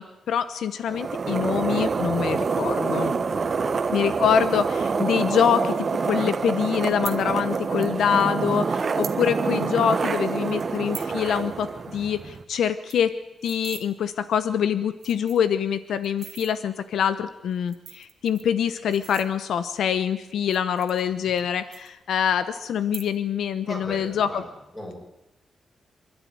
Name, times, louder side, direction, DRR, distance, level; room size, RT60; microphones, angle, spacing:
voice 1, 0.0-3.1 3.9-13.1 13.4-24.4, left 8 dB, 85° left, 12 dB, 1.0 m, -25 dB
sound 1, 0.9-12.4, right 5 dB, 35° right, 1.1 m, -26 dB
voice 2, 3.3-3.8 21.2-21.3 23.6-24.5 24.7-24.9, left 1 dB, 15° left, 0 dB, 6.6 m, -37 dB
sound 2, 6.9-7.2 8.1-8.2 8.8-9.2 9.6-9.7 9.9-10.1 10.6-11.2 11.5-11.7 11.9-12.0 12.3-12.4 12.7-13.8 14.5-14.6 14.9-15.5 16.0-16.5 17.5-19.7 20.4-21.4 21.7-22.3 22.8-23.4 23.7-24.1, right 8 dB, 70° right, 1.6 m, -41 dB
26.5 x 12.0 x 9.5 m, 0.96 s
wide cardioid pair, 155°, 0 cm